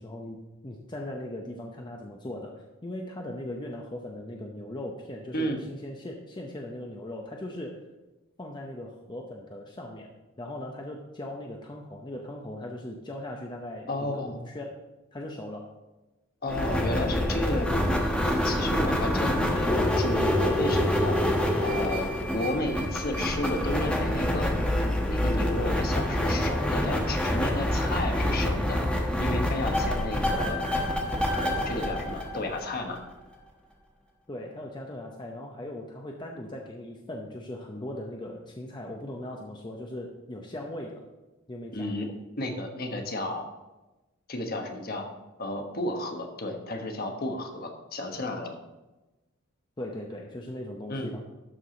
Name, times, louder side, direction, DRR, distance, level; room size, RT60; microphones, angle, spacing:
voice 1, 0.0-7.8 8.4-10.1 10.4-14.7 15.1-15.7 34.3-41.0 41.5-42.1 49.8-51.2, left 1 dB, 20° left, 0 dB, 0.7 m, -39 dB
voice 2, 13.9-14.4 16.4-17.8 18.2-21.2 21.6-24.5 25.1-28.8 29.2-30.7 31.4-33.0 41.7-42.1 42.4-43.4 44.3-45.1 45.4-48.6 50.9-51.1, left 1 dB, 45° left, 4 dB, 1.2 m, -32 dB
sound 1, 16.5-33.0, left 1 dB, 5° left, 1.1 m, -26 dB
12.5 x 4.8 x 3.9 m, 1.1 s
head